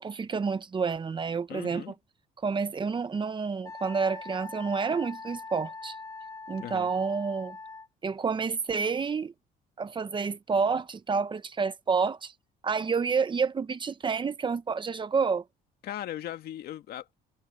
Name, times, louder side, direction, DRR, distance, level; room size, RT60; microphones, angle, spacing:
voice 1, 0.0-1.8 2.4-6.0 6.5-7.6 8.0-9.3 9.8-12.3 12.6-15.4, right 5 dB, 30° right, 1.1 m, -29 dB
voice 2, 1.5-1.9 6.6-6.9 15.8-17.1, left 12 dB, 65° left, 2.1 m, -38 dB
Wind instrument woodwind instrument, 3.6-7.9, left 3 dB, 20° left, 5.5 m, -42 dB
cardioid pair, 110°, 17 cm